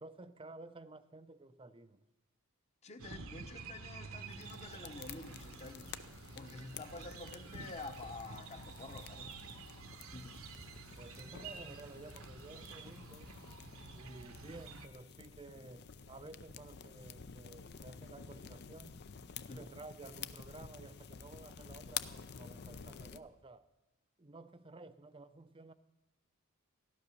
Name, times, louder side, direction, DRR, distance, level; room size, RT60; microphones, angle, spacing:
voice 1, 0.0-2.0 11.0-13.3 13.9-19.0 19.5-23.7 24.2-25.7, right 2 dB, 25° right, 0.6 m, -53 dB
voice 2, 2.8-5.9 6.3-9.3 10.1-10.3 14.1-14.3 19.5-19.7, left 3 dB, 30° left, 1.1 m, -49 dB
sound 1, 3.0-14.9, right 4 dB, 70° right, 1.1 m, -50 dB
sound 2, 4.3-23.2, left 7 dB, 50° left, 0.6 m, -50 dB
15.5 x 12.0 x 6.7 m
head